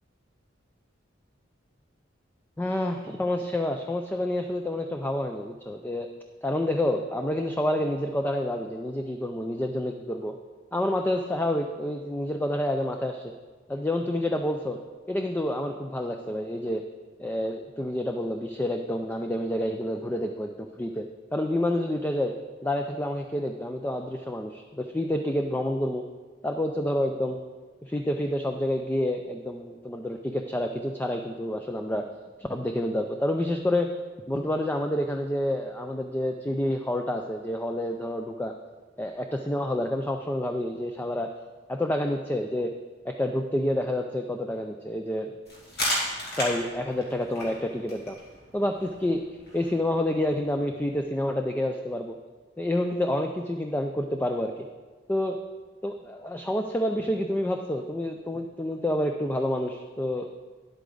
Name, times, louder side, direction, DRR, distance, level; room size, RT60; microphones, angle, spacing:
voice 1, 2.6-6.1 6.4-10.3 10.7-13.3 13.7-14.8 15.1-16.8 17.2-21.1 21.3-22.3 22.6-26.0 26.4-27.4 27.8-32.1 32.4-33.9 34.3-38.5 39.0-41.3 41.7-42.7 43.0-45.3 46.4-48.2 48.5-49.2 49.5-52.2 52.6-54.7 55.1-55.4 55.8-60.3, left 1 dB, 10° left, 4 dB, 0.4 m, -28 dB
sound 1, 45.5-51.0, left 1 dB, 55° left, 2.5 m, -35 dB
10.5 x 8.2 x 3.9 m, 1.4 s
head